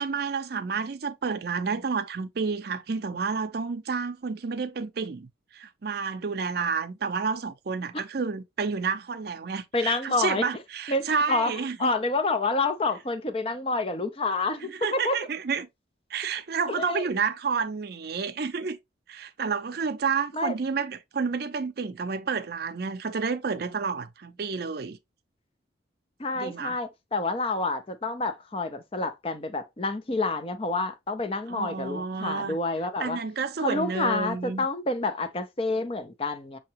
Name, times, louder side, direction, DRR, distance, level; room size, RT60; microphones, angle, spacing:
voice 1, 0.0-11.9 14.7-15.7 16.1-18.8 19.1-25.0 26.4-26.8 31.5-32.6 33.0-34.6, right 5 dB, 55° right, 0.5 m, -30 dB
voice 2, 9.7-10.4 10.9-11.5 11.8-15.2 16.7-17.1 20.3-20.6 26.2-33.2 33.6-36.6, left 3 dB, 30° left, 0.5 m, -28 dB
5.6 x 2.8 x 2.8 m
head